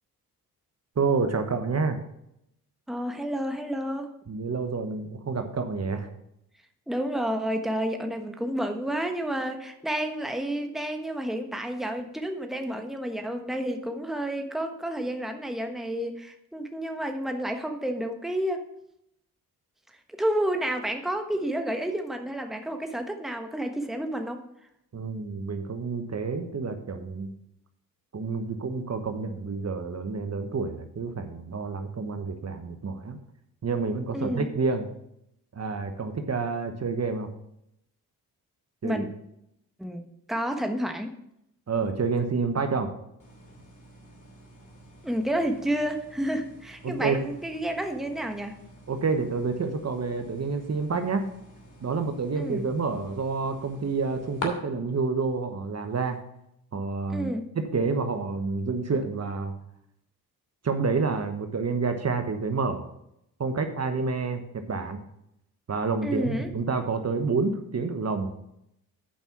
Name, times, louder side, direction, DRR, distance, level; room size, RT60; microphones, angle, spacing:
voice 1, 1.0-2.0 4.3-6.1 24.9-27.3 28.1-33.2 33.6-34.9 35.5-37.3 38.8-39.0 41.7-42.9 46.8-47.2 48.9-51.3 51.8-56.2 56.7-57.3 57.6-59.5 60.6-62.9 63.4-65.0 65.7-68.3, right 4 dB, 40° right, 7 dB, 1.1 m, -28 dB
voice 2, 2.9-4.1 6.9-18.7 19.9-24.4 34.1-34.5 38.8-39.1 39.8-40.0 40.3-41.1 45.0-48.5 52.3-52.7 57.1-57.4 66.0-66.5, right 1 dB, ahead, 5 dB, 1.2 m, -30 dB
sound 1, 43.2-54.5, left 2 dB, 50° left, 2.8 m, -46 dB
8.9 x 5.4 x 6.0 m, 0.79 s
supercardioid pair, 55°, 39 cm